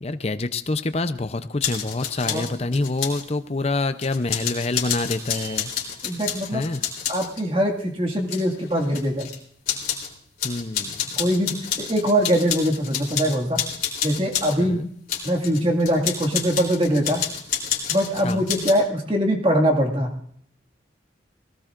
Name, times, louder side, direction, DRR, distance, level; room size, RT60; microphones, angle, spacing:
voice 1, 0.0-5.7 6.5-6.8 10.4-11.1 14.6-14.9 18.2-18.5, left 2 dB, 35° left, 10 dB, 0.6 m, -26 dB
sound 1, 1.6-3.2 4.0-7.4 8.2-9.4 9.7-10.1 10.4-14.6 15.1-18.7, left 8 dB, 50° left, 3.3 m, -29 dB
voice 2, 6.0-6.6 7.1-9.3 11.2-13.6 14.0-14.9 15.2-17.2 17.9-20.1, equal, 30° right, 2 dB, 2.0 m, -22 dB
19.5 x 18.0 x 2.5 m, 0.66 s
head